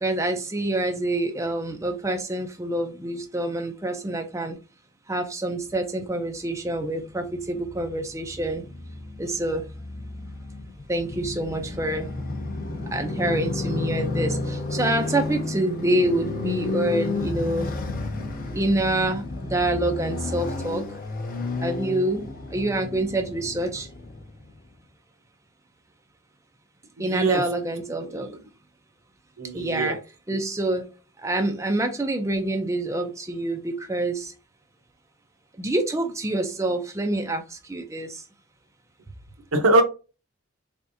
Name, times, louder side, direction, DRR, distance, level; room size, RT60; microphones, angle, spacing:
voice 1, 0.0-4.6 5.1-8.6 9.2-9.6 10.9-12.1 12.9-17.7 18.5-20.8 21.6-23.9 27.0-28.3 29.5-30.0 30.3-30.8 31.2-34.3 35.6-38.2, right 1 dB, 15° right, 0.4 m, -26 dB
Motorcycle, 6.4-24.6, left 2 dB, 40° left, 0.7 m, -32 dB
voice 2, 27.0-27.4 28.0-28.4 29.4-30.0 39.5-39.8, right 2 dB, 70° right, 0.8 m, -22 dB
3.9 x 3.5 x 2.6 m
head